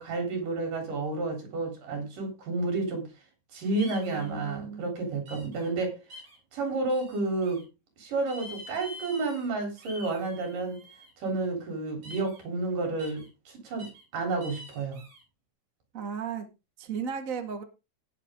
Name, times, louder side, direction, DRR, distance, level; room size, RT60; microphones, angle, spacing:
voice 1, 0.0-3.1 3.5-6.0 6.5-7.6 8.0-10.8 11.2-15.0, right 3 dB, 70° right, 5.3 m, -31 dB
sound 1, 3.8-4.3 5.3-5.7 6.1-6.4 6.9-7.6 8.3-9.5 9.8-11.1 12.0-12.4 13.0-13.3 13.8-14.0 14.4-15.2, left 1 dB, 50° right, 6.2 m, -46 dB
voice 2, 3.9-4.9 15.9-16.5 16.8-17.6, right 6 dB, 30° right, 1.6 m, -35 dB
18.5 x 6.7 x 3.7 m
omnidirectional pair, 4.0 m